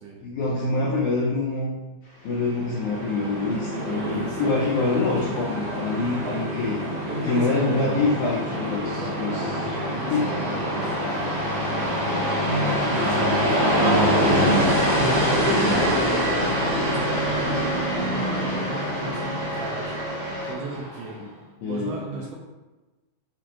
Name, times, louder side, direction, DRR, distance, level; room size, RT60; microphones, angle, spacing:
voice 1, 0.2-1.7 2.2-6.8 7.3-9.7 10.1-10.4 15.4-15.9 21.6-22.0, left 3 dB, 85° left, -3 dB, 1.7 m, -26 dB
sound 1, 2.2-20.5, equal, 55° left, 1.0 m, -32 dB
Train, 2.5-21.1, equal, 55° right, 1.9 m, -26 dB
voice 2, 3.7-4.8 7.1-8.1 8.8-12.2 12.8-19.9 20.4-21.2 21.6-22.4, right 3 dB, 80° right, -2 dB, 2.0 m, -36 dB
6.8 x 2.5 x 2.9 m, 1.1 s
omnidirectional pair, 4.2 m